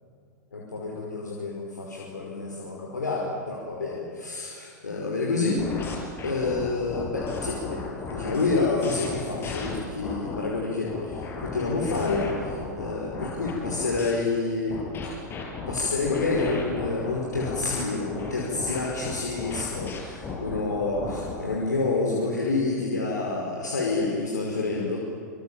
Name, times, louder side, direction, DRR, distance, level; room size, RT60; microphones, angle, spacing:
voice 1, 0.5-5.6 6.2-10.9 11.4-15.2 15.7-25.0, left 3 dB, 75° left, -3 dB, 5.2 m, -28 dB
sound 1, 5.6-10.4 10.9-14.1 14.7-21.4, left 4 dB, 25° left, 6.2 m, -35 dB
27.0 x 26.5 x 7.5 m, 2.4 s
figure-of-eight pair, 95°, 10 cm